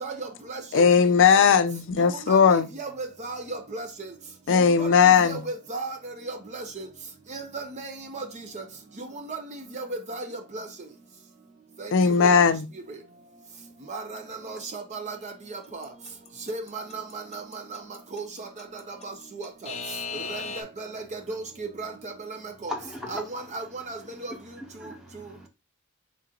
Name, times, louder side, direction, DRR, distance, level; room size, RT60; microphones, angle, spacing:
voice 1, 0.0-0.8 2.0-2.4 2.8-4.1 4.5-4.9 5.3-6.0 6.3-6.9 7.3-8.2 9.3-9.4 9.8-10.2 10.5-10.7 11.8-11.9 12.2-12.3 13.9-15.3 15.7-15.8 16.5-17.8 18.1-18.5 19.0-19.1 20.3-22.4 22.6-22.7 23.1-24.0, right 3 dB, 30° right, 0.6 m, -35 dB
voice 2, 0.7-2.7 4.5-5.4 11.9-12.7, left 6 dB, 60° left, 0.4 m, -18 dB
Alarm / Clock, 15.8-20.6, left 5 dB, 30° left, 0.7 m, -35 dB
voice 3, 22.7-23.2 23.7-25.5, left 1 dB, 5° right, 1.3 m, -40 dB
3.8 x 3.0 x 3.6 m
head